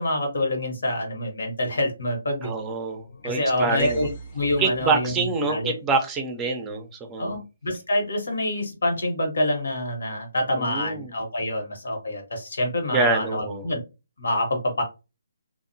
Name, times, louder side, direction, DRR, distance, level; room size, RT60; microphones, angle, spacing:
voice 1, 0.0-2.5 3.2-4.1 4.3-5.8 7.2-13.8 14.2-14.8, left 1 dB, 75° left, 3 dB, 1.0 m, -26 dB
voice 2, 2.4-4.1 4.6-7.4 10.5-11.1 12.9-13.7, right 4 dB, 15° right, 4 dB, 0.5 m, -26 dB
sound 1, 2.9-5.1, right 1 dB, 40° left, 0.6 m, -41 dB
2.7 x 2.0 x 2.6 m, 0.28 s
hypercardioid pair, 150°, 0 cm